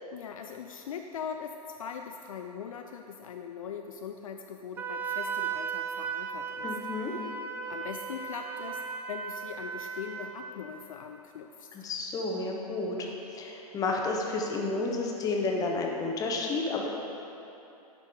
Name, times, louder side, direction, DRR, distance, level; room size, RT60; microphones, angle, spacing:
voice 1, 0.1-6.7 7.7-11.7, left 7 dB, 55° left, 4 dB, 0.4 m, -41 dB
Wind instrument woodwind instrument, 4.8-10.5, right 6 dB, 10° right, 0.3 m, -36 dB
voice 2, 6.6-7.1 11.7-16.9, left 3 dB, 15° left, 0 dB, 0.8 m, -31 dB
10.5 x 5.2 x 3.6 m, 2.8 s
figure-of-eight pair, 105°, 20 cm